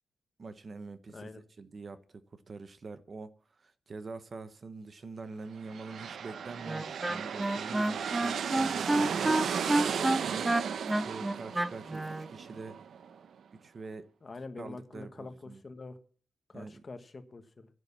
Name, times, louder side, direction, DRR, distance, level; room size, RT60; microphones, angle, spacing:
voice 1, 0.4-1.3 1.6-9.7 10.2-10.6 10.9-12.8 13.6-14.1 14.6-15.6 16.5-16.8, right 3 dB, 35° right, 0.8 m, -45 dB
voice 2, 1.1-1.4 14.2-16.0 16.5-17.7, left 3 dB, 30° left, 1.3 m, -45 dB
sound 1, 5.6-13.3, right 7 dB, 75° right, 0.7 m, -35 dB
Wind instrument woodwind instrument, 6.7-12.3, right 1 dB, 10° right, 0.5 m, -29 dB
11.0 x 8.0 x 7.3 m
wide cardioid pair, 160°, 0 cm